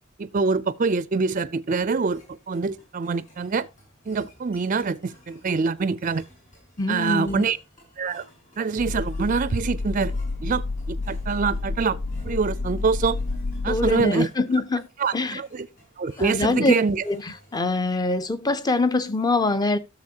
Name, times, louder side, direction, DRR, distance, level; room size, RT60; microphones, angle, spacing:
voice 1, 0.2-3.7 4.1-6.2 6.9-7.6 8.0-8.2 8.6-10.1 10.4-12.0 12.2-13.2 13.6-14.3 15.0-15.7 16.0-17.0, right 4 dB, 40° right, 0.4 m, -25 dB
sound 1, 1.8-17.8, equal, 35° left, 6.6 m, -55 dB
voice 2, 6.8-7.4 13.7-14.9 15.1-15.4 16.2-16.7 17.0-19.8, left 2 dB, 20° left, 0.6 m, -24 dB
sound 2, 8.8-13.9, left 3 dB, 75° left, 0.6 m, -29 dB
13.0 x 6.8 x 2.8 m
head